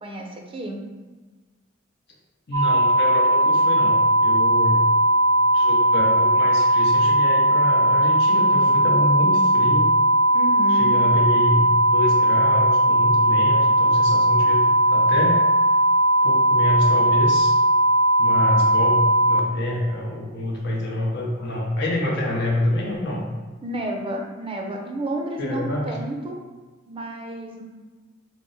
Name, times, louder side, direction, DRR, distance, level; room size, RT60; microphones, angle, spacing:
voice 1, 0.0-0.8 10.3-11.0 23.6-26.4 26.9-27.6, right 1 dB, 25° right, 1 dB, 0.5 m, -31 dB
voice 2, 2.5-4.9 5.5-9.9 10.7-14.6 14.9-15.4 16.2-17.5 18.2-23.2 25.4-26.0, left 1 dB, 60° left, -2 dB, 0.7 m, -27 dB
sound 1, 2.5-19.4, right 1 dB, 75° right, 0.5 m, -18 dB
4.9 x 2.0 x 3.8 m, 1.3 s
head